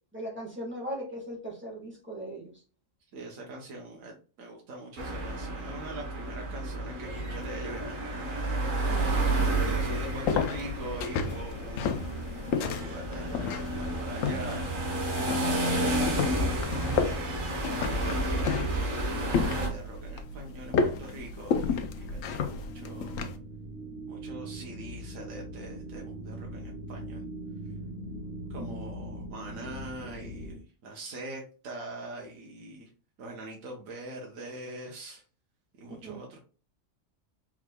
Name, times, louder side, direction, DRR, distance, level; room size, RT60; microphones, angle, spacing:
voice 1, 0.1-2.6 8.9-9.2 15.6-16.0 28.7-28.8 35.9-36.2, right 1 dB, 10° right, -2 dB, 1.5 m, -39 dB
voice 2, 3.1-8.3 9.5-12.0 12.6-14.7 16.3-17.3 17.9-23.2 24.1-27.3 28.5-32.9 33.2-35.2 35.8-36.4, right 2 dB, 75° right, 0 dB, 1.3 m, -43 dB
Traffic nearby, 5.0-19.7, right 1 dB, 40° right, 1.2 m, -31 dB
sound 1, 8.8-23.4, left 5 dB, 75° left, 1.0 m, -33 dB
sound 2, 19.7-30.6, right 1 dB, 55° left, 1.4 m, -42 dB
4.6 x 3.7 x 2.2 m, 0.38 s
omnidirectional pair, 1.4 m